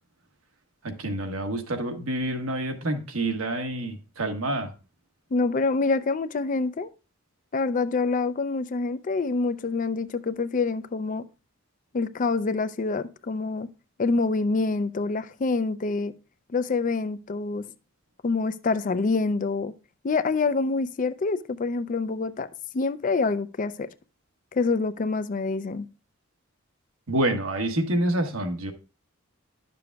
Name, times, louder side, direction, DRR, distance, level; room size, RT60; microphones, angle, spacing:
voice 1, 0.8-4.7 27.1-28.7, right 1 dB, 90° right, 1.2 m, -27 dB
voice 2, 5.3-6.9 7.5-11.2 11.9-13.7 14.0-16.1 16.5-17.7 18.2-19.7 20.0-22.5 22.7-23.9 24.5-25.9, left 3 dB, 40° left, 0.4 m, -26 dB
11.0 x 6.8 x 2.3 m
head